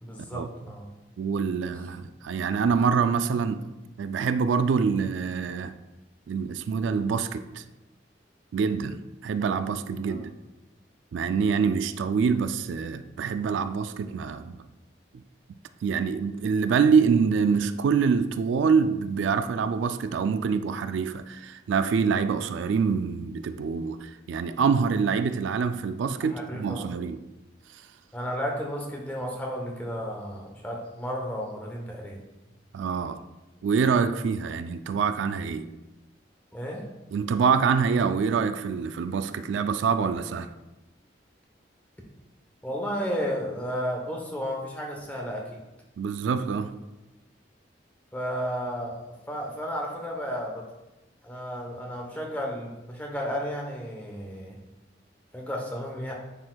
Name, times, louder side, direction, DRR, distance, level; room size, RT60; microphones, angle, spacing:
voice 1, 0.0-0.9 10.0-10.2 26.1-26.9 28.1-32.2 36.5-36.9 42.6-45.6 48.1-50.6 51.2-54.6 55.3-56.1, equal, 10° left, 0.9 m, -33 dB
voice 2, 1.2-3.6 4.0-5.7 6.3-7.6 8.5-10.3 11.1-14.6 15.8-27.2 27.7-27.8 32.7-33.2 33.6-35.7 37.1-40.5 46.0-46.7, right 5 dB, 80° right, 0.3 m, -25 dB
9.6 x 4.4 x 2.3 m
head